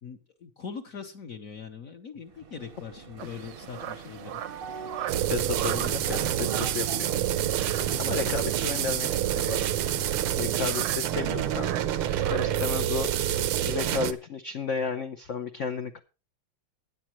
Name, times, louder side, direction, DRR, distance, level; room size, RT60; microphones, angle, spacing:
voice 1, 0.0-4.4 8.1-8.4, left 6 dB, 50° left, 5 dB, 1.1 m, -41 dB
sound 1, 2.3-13.1, right 5 dB, 40° right, 0.8 m, -44 dB
sound 2, 3.2-12.8, right 11 dB, 70° right, 1.3 m, -40 dB
sound 3, 5.1-14.1, right 11 dB, 85° right, 1.7 m, -27 dB
voice 2, 5.3-7.2 8.0-9.7 10.4-16.0, left 5 dB, 75° left, 8 dB, 0.6 m, -33 dB
16.0 x 10.0 x 3.0 m, 0.32 s
omnidirectional pair, 2.3 m